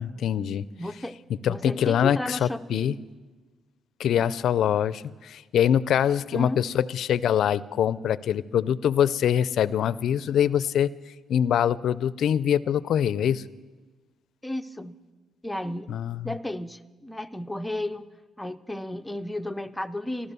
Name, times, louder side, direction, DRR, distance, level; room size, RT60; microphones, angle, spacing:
voice 1, 0.0-0.7 1.3-3.0 4.0-10.9 11.3-13.4 15.9-16.3, left 9 dB, 70° left, 19 dB, 0.4 m, -24 dB
voice 2, 0.8-1.1 1.4-3.0 4.1-4.3 6.1-6.6 14.4-15.0 15.4-15.9 16.2-18.1 18.4-20.3, left 1 dB, 5° left, 9 dB, 0.6 m, -33 dB
14.5 x 12.5 x 6.8 m, 1.3 s
cardioid pair, 90°, 0 cm